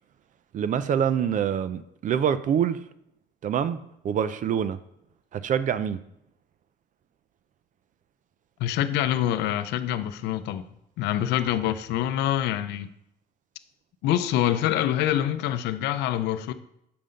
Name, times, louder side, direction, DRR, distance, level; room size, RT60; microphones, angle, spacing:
voice 1, 0.5-2.8 3.4-3.8 4.0-4.8 5.3-6.0, right 8 dB, 50° right, 0.5 m, -25 dB
voice 2, 8.6-10.6 11.0-12.9 14.0-16.5, left 11 dB, 85° left, 0.5 m, -25 dB
6.8 x 5.6 x 5.2 m
cardioid pair, 110°, 17 cm